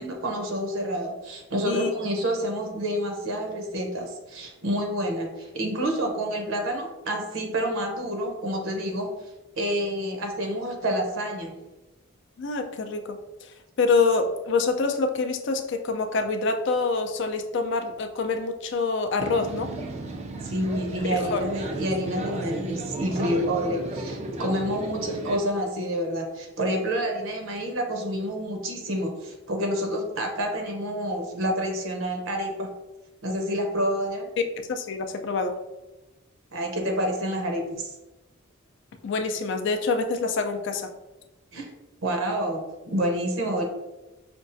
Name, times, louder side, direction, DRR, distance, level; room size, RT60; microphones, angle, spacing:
voice 1, 0.0-9.1 9.6-11.6 20.4-32.7 33.2-34.3 36.5-37.9 41.5-41.7 42.0-43.7, equal, 70° right, 3 dB, 0.7 m, -28 dB
voice 2, 12.4-13.2 13.8-19.7 21.1-21.4 34.7-35.6 39.0-40.9, left 4 dB, 60° left, 6 dB, 0.4 m, -26 dB
sound 1, 19.2-25.4, right 2 dB, 30° right, 0.3 m, -34 dB
5.2 x 2.3 x 2.5 m, 1.0 s
head